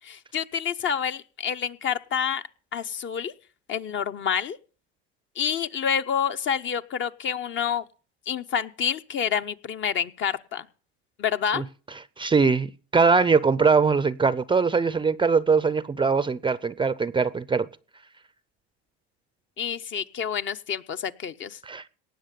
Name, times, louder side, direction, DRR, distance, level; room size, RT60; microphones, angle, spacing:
voice 1, 0.0-2.4 2.7-3.3 3.7-4.6 5.4-7.8 8.3-10.7 11.2-11.6 19.6-21.6, left 8 dB, 40° left, 0.8 m, -28 dB
voice 2, 12.2-17.7 21.7-21.8, right 5 dB, 15° right, 0.5 m, -22 dB
18.5 x 6.5 x 6.7 m
supercardioid pair, 95°, 31 cm